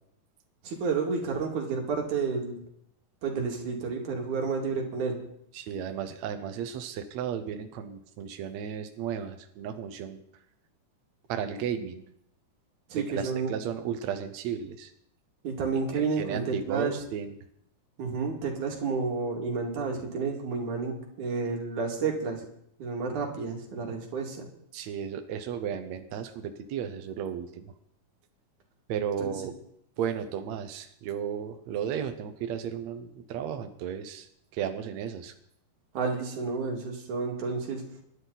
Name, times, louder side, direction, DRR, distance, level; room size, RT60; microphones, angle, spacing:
voice 1, 0.6-2.6 3.2-5.2 12.9-13.5 15.4-17.0 18.0-22.5 22.8-24.5 29.2-29.3 35.9-37.8, right 4 dB, 55° right, 2 dB, 3.6 m, -30 dB
voice 2, 5.5-10.2 11.3-12.0 12.9-14.9 15.9-17.4 24.7-27.7 28.9-29.5 30.0-35.3, right 8 dB, 75° right, 8 dB, 1.6 m, -34 dB
27.5 x 11.5 x 4.1 m, 0.72 s
omnidirectional pair, 4.4 m